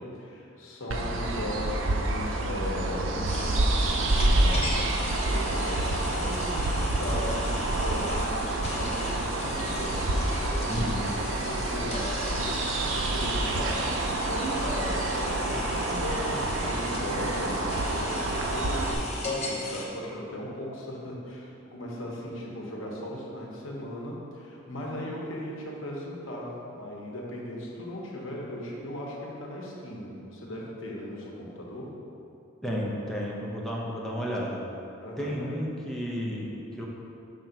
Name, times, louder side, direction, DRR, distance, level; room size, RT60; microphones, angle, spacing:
voice 1, 0.0-31.9 35.0-35.4, left 1 dB, 85° left, -3 dB, 1.2 m, -38 dB
sound 1, 0.9-18.9, right 2 dB, 70° right, 0.6 m, -28 dB
sound 2, 3.2-19.9, left 2 dB, 35° left, 0.8 m, -37 dB
voice 2, 10.7-11.1 32.6-34.6 35.2-36.9, equal, ahead, -5 dB, 0.7 m, -32 dB
5.8 x 3.9 x 5.8 m, 2.7 s
head